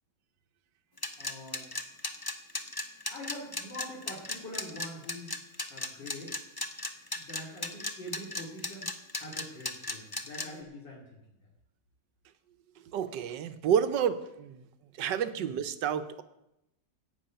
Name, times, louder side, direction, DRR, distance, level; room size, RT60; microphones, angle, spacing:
sound 1, 1.0-10.5, left 2 dB, 20° left, 0.5 m, -35 dB
voice 1, 1.2-1.7 3.1-5.4 5.7-6.4 7.1-8.9 9.2-11.2 15.4-15.5, left 1 dB, 75° left, -3 dB, 3.2 m, -44 dB
voice 2, 12.9-14.7 15.0-16.2, right 8 dB, 75° right, 11 dB, 1.5 m, -29 dB
15.0 x 5.6 x 9.0 m, 0.88 s
omnidirectional pair, 2.0 m